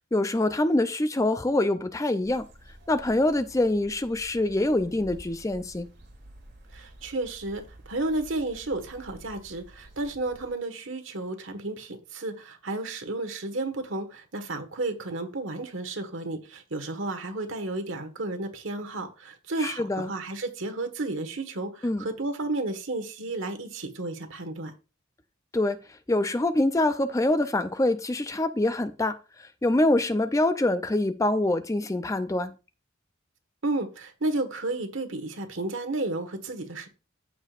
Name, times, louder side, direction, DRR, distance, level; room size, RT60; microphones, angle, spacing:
voice 1, 0.1-2.5 2.9-5.9 19.6-20.1 21.8-22.0 25.5-25.8 26.1-32.5, left 1 dB, 15° left, 0.4 m, -25 dB
sound 1, 2.2-10.5, right 1 dB, 55° right, 2.4 m, -50 dB
voice 2, 6.7-24.7 33.6-36.9, right 2 dB, 70° right, 1.5 m, -32 dB
14.0 x 5.1 x 2.5 m
head